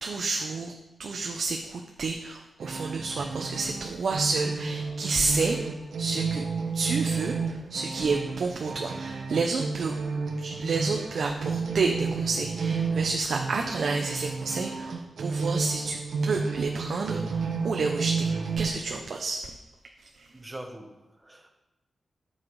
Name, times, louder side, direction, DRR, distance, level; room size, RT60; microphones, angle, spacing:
voice 1, 0.0-0.7 1.0-5.6 6.0-6.4 6.7-9.9 10.4-18.3 18.6-19.4 20.1-20.3, right 4 dB, 65° right, 2 dB, 0.7 m, -30 dB
sound 1, 2.6-18.7, right 4 dB, 85° right, 1.1 m, -31 dB
voice 2, 20.3-21.5, right 1 dB, 10° right, 3 dB, 1.1 m, -43 dB
7.7 x 5.7 x 4.7 m, 1.1 s
wide cardioid pair, 115°, 0 cm